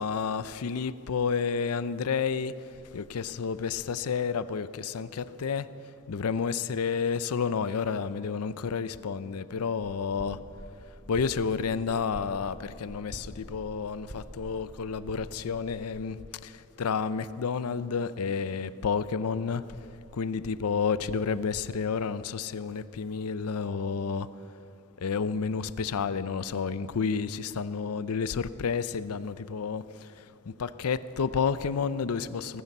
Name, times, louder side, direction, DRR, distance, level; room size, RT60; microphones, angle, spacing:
voice 1, 0.0-2.5 2.9-5.7 6.1-10.4 11.1-16.5 16.8-19.6 20.2-24.3 25.0-29.8 30.5-32.6, left 5 dB, 85° left, 15 dB, 0.5 m, -30 dB
sound 1, 9.8-16.0, equal, 70° right, 2.4 m, -46 dB
18.5 x 14.5 x 5.4 m, 2.7 s
head